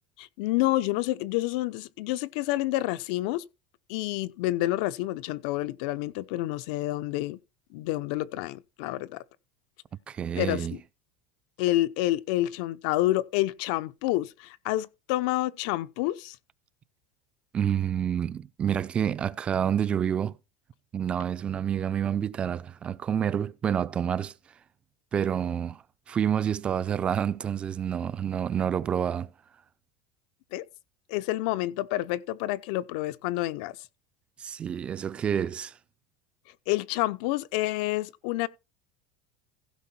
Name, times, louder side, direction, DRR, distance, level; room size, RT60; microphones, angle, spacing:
voice 1, 0.2-3.5 3.9-7.4 7.7-9.2 10.4-10.7 11.6-16.4 30.5-30.6 31.1-33.8 36.7-38.5, left 16 dB, 70° left, 0.7 m, -28 dB
voice 2, 10.1-10.8 17.5-20.3 20.9-24.3 25.1-29.3 34.4-35.7, right 8 dB, 25° right, 0.5 m, -28 dB
15.5 x 5.4 x 4.3 m
supercardioid pair, 145°, 5 cm